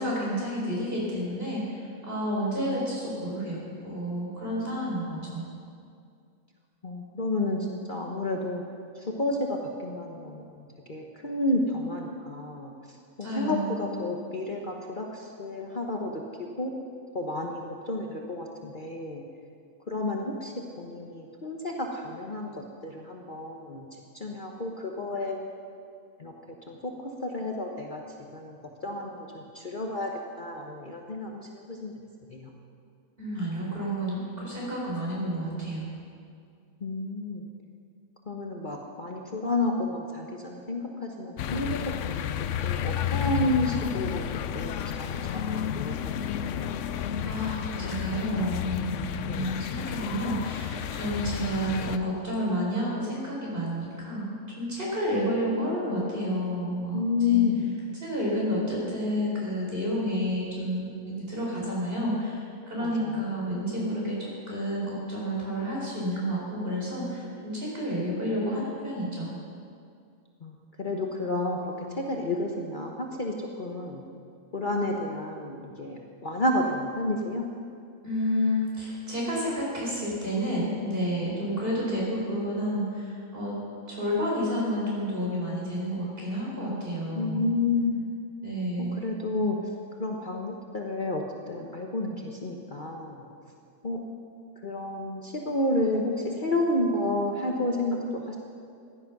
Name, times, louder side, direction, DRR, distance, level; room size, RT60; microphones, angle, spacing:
voice 1, 0.0-5.5 13.2-13.8 33.2-35.9 47.3-57.0 57.3-57.4 58.0-69.3 78.0-83.6 83.9-87.6 88.4-89.0, equal, 40° right, -5 dB, 5.1 m, -30 dB
voice 2, 6.8-8.6 8.9-16.2 16.6-16.7 17.1-19.2 19.9-23.9 24.1-25.4 26.2-26.3 26.7-28.0 28.3-30.1 30.4-31.9 32.3-32.5 36.8-37.5 38.3-42.3 42.6-44.3 44.5-46.9 49.3-49.6 56.9-57.6 62.8-63.2 70.4-74.0 74.5-77.4 87.2-88.1 88.8-89.6 90.0-93.3 93.8-94.0 94.6-98.4, left 2 dB, 40° left, 0 dB, 1.2 m, -31 dB
sound 1, 41.4-52.0, left 10 dB, 70° left, 0.9 m, -31 dB
16.0 x 11.5 x 6.0 m, 2.3 s
omnidirectional pair, 1.5 m